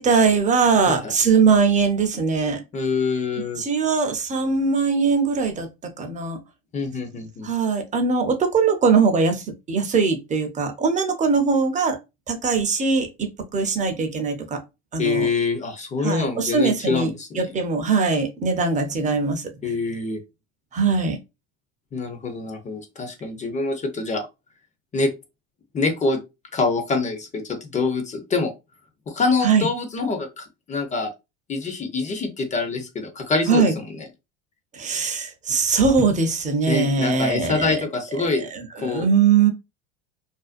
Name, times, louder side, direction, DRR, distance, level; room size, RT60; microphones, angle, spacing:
voice 1, 0.0-2.6 3.6-5.7 6.0-6.4 7.4-12.0 12.3-14.6 14.9-15.3 16.0-19.7 20.7-21.2 29.4-29.7 33.5-33.8 34.7-37.9 38.2-39.5, right 5 dB, 20° right, 0.6 m, -21 dB
voice 2, 2.7-3.6 6.7-7.5 15.0-17.4 19.6-20.2 21.9-24.3 24.9-25.1 25.7-26.2 26.5-28.5 29.1-31.1 31.5-33.8 36.7-38.4 38.8-39.1, left 3 dB, 20° left, 0.6 m, -25 dB
2.5 x 2.1 x 2.4 m
supercardioid pair, 100°, 36 cm